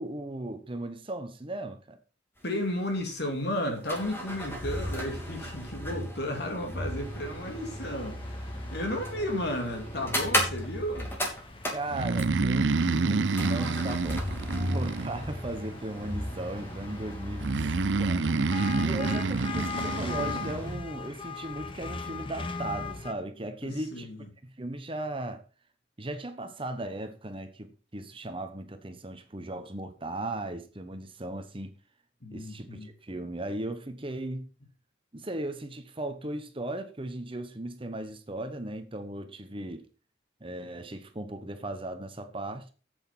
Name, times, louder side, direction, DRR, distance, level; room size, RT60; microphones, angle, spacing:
voice 1, 0.0-2.0 11.7-14.4 14.7-18.5 18.8-24.1 24.4-25.4 26.0-31.8 32.3-34.5 35.1-39.9 40.4-42.7, right 1 dB, 30° right, 1.1 m, -37 dB
voice 2, 2.4-8.2 8.7-11.1 18.7-18.9 23.6-24.2 32.2-32.9, left 1 dB, 60° left, 2.8 m, -33 dB
sound 1, 2.4-2.5 2.7-2.8 3.6-12.6 13.3-20.7, equal, 10° left, 3.0 m, -35 dB
sound 2, 6.9-23.1, left 4 dB, 25° left, 1.0 m, -41 dB
Breathing, 11.9-15.6 17.4-20.5, right 3 dB, 70° right, 0.6 m, -28 dB
8.3 x 7.8 x 5.7 m
head